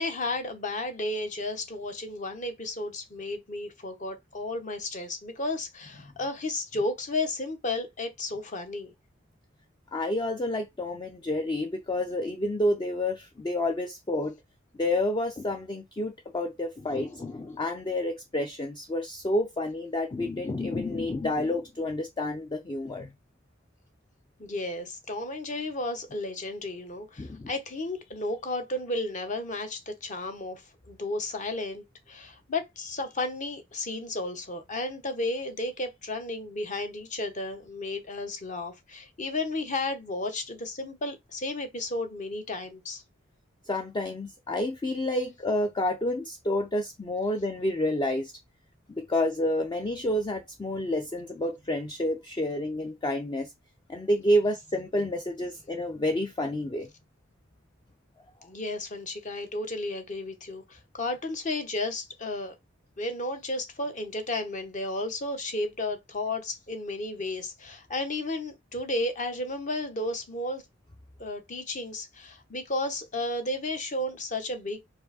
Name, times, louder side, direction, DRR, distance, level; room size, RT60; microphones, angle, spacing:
voice 1, 0.0-8.9 24.4-43.0 58.4-62.5 63.0-70.6 71.2-74.8, left 2 dB, 40° left, 0.9 m, -33 dB
voice 2, 9.9-14.3 14.8-23.1 27.2-27.5 43.7-48.3 48.9-53.5 53.9-56.9, left 1 dB, 20° left, 0.4 m, -29 dB
4.7 x 2.5 x 4.1 m
head